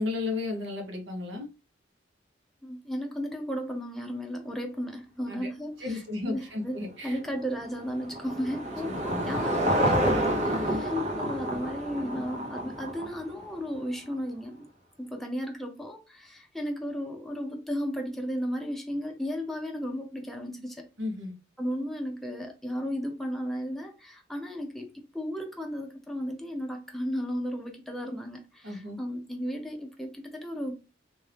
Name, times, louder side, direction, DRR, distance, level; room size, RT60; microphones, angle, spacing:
voice 1, 0.0-1.5 5.3-5.5 5.8-7.2 8.8-9.4 21.0-21.3 28.6-29.0, left 3 dB, 70° right, 1.2 m, -34 dB
voice 2, 2.6-14.7 15.0-20.9 21.6-30.7, equal, ahead, 0.7 m, -34 dB
Car passing by / Engine, 7.2-13.7, equal, 40° right, 0.9 m, -29 dB
3.6 x 2.6 x 3.3 m
head